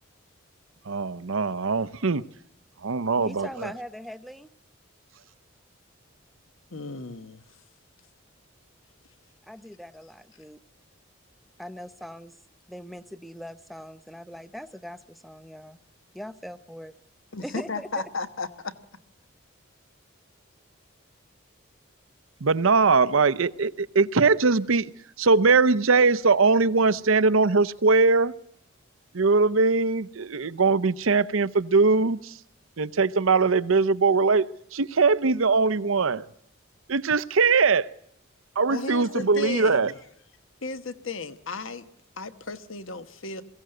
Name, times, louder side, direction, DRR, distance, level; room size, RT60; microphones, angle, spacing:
voice 1, 0.9-2.2 2.8-3.7 22.4-24.9 25.2-28.3 29.1-32.3 32.8-34.5 34.7-36.3 36.9-37.9 38.6-39.9, right 4 dB, 80° right, 17 dB, 0.7 m, -21 dB
voice 2, 3.2-4.5 9.5-10.6 11.6-12.4 12.7-15.8 16.1-16.9 17.4-18.0, equal, ahead, 11 dB, 0.7 m, -41 dB
voice 3, 6.7-7.4 17.3-18.7 38.7-40.0 40.6-41.9 42.2-43.4, left 3 dB, 70° left, 11 dB, 1.3 m, -34 dB
22.0 x 16.0 x 7.8 m, 0.74 s
head